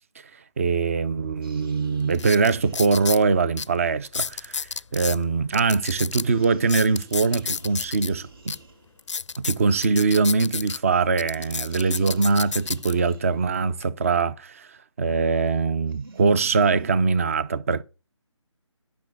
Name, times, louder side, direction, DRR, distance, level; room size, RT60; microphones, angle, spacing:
voice 1, 0.6-8.6 9.4-14.7 15.0-17.8, right 4 dB, 30° right, 0.6 m, -22 dB
sound 1, 1.4-3.3 5.5-9.2 11.4-13.6 15.9-16.9, right 2 dB, 50° right, 2.0 m, -46 dB
sound 2, 1.5-1.6 2.1-3.2 3.6-3.7 4.0-5.2 5.5-8.1 8.5-8.6 9.0-10.8 11.2-12.9 13.6-13.8, left 5 dB, 70° left, 0.4 m, -31 dB
10.5 x 5.9 x 6.3 m
figure-of-eight pair, 160°, 16 cm